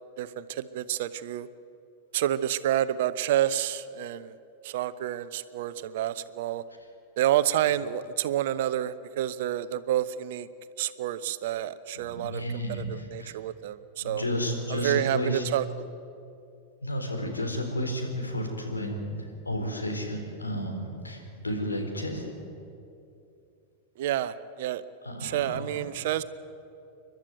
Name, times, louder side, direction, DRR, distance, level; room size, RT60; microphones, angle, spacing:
voice 1, 0.2-1.5 2.1-4.3 4.6-6.6 7.2-10.5 10.8-12.4 12.7-14.2 14.7-15.6 24.0-24.8 25.2-26.2, right 12 dB, 55° right, 14 dB, 0.8 m, -29 dB
voice 2, 11.9-13.3 14.0-15.4 16.8-22.3 25.0-25.9, equal, 80° left, 3 dB, 3.8 m, -32 dB
29.0 x 12.0 x 9.2 m, 2.6 s
figure-of-eight pair, 90°, 0 cm